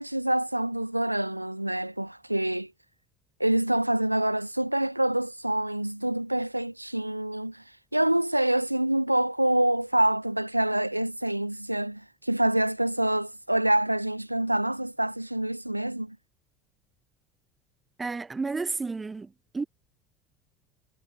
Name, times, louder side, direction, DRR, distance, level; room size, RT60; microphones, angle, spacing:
voice 1, 0.0-2.7 3.4-7.6 7.9-16.2, right 1 dB, 90° right, 1.5 m, -26 dB
voice 2, 18.0-19.6, right 4 dB, 20° right, 1.3 m, -32 dB
figure-of-eight pair, 70°, 0 cm